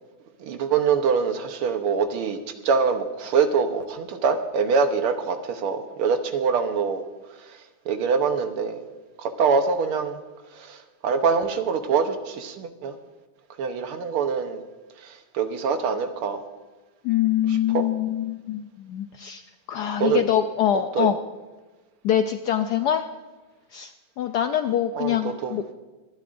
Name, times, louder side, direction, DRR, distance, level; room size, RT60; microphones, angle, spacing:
voice 1, 0.4-2.4 2.6-7.0 7.4-8.8 9.2-10.2 10.5-13.0 13.6-14.6 15.0-16.4 17.5-17.8 20.0-20.2 20.9-21.1 25.0-25.6, right 5 dB, 90° right, 7 dB, 1.9 m, -24 dB
voice 2, 17.0-19.4 19.7-21.2 22.0-23.1 23.7-25.7, left 10 dB, 90° left, 8 dB, 0.9 m, -24 dB
25.5 x 11.5 x 2.6 m, 1.2 s
omnidirectional pair, 2.4 m